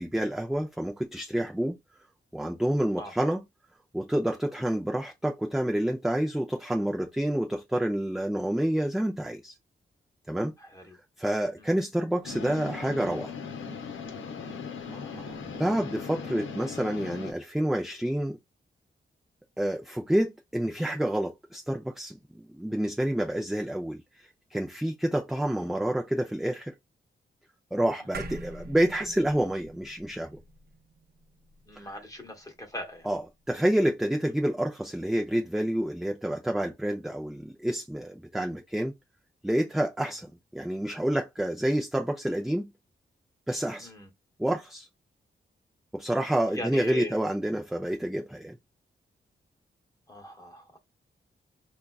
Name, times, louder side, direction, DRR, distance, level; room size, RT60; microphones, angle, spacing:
voice 1, 0.0-1.8 2.3-3.4 3.9-9.5 10.3-10.5 11.2-13.3 15.4-18.4 19.6-24.0 24.5-26.7 27.7-30.4 31.8-31.9 33.1-33.2 33.5-38.9 39.4-42.7 43.5-43.9 44.4-44.9 45.9-48.6, right 1 dB, ahead, 0.4 m, -28 dB
voice 2, 10.6-11.0 11.6-11.7 14.9-15.4 22.7-22.9 31.7-33.1 43.8-44.1 46.5-47.2 50.1-50.8, left 1 dB, 15° left, 1.0 m, -40 dB
sound 1, 12.2-17.3, left 5 dB, 85° left, 0.7 m, -38 dB
sound 2, 28.1-32.8, right 3 dB, 50° right, 0.6 m, -44 dB
3.7 x 2.3 x 2.3 m
wide cardioid pair, 95°, 20 cm